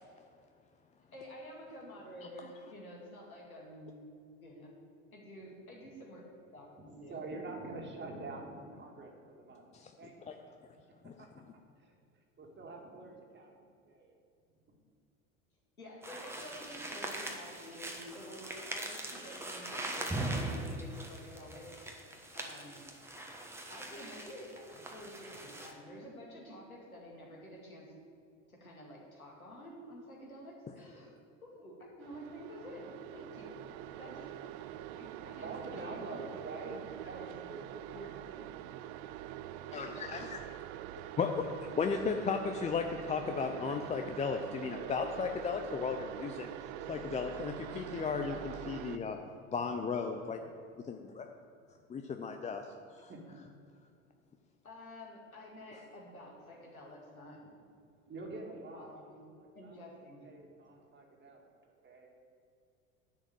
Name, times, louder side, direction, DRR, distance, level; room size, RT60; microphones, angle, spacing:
voice 1, 1.1-4.0 4.4-4.7 5.1-6.3 6.5-7.2 15.8-21.8 22.3-22.8 23.7-27.9 28.5-31.2 31.6-33.6 34.0-34.3 35.0-36.0 36.7-37.5 37.9-38.5 54.6-57.4 58.5-59.2 59.5-60.3, equal, 90° left, -3 dB, 2.3 m, -50 dB
voice 2, 6.9-9.6 10.0-10.4 11.0-11.5 11.8-12.0 12.4-14.1 14.7-14.8 34.9-36.8 37.0-38.3 38.8-39.5 48.3-48.6 48.9-49.7 50.4-50.5 53.1-53.4 58.1-59.9 60.2-61.5 61.8-62.2, right 3 dB, 25° right, 0 dB, 2.2 m, -47 dB
sound 1, 16.0-25.7, right 1 dB, 5° right, 1.3 m, -41 dB
sound 2, 32.0-49.0, right 12 dB, 50° right, 0.6 m, -45 dB
voice 3, 39.7-40.4 41.2-46.5 46.9-48.3 48.7-49.2 49.5-50.4 50.9-51.3 51.9-52.7 53.0-53.1, left 5 dB, 15° left, 5 dB, 0.5 m, -35 dB
10.5 x 4.9 x 7.8 m, 2.4 s
figure-of-eight pair, 75°, 42 cm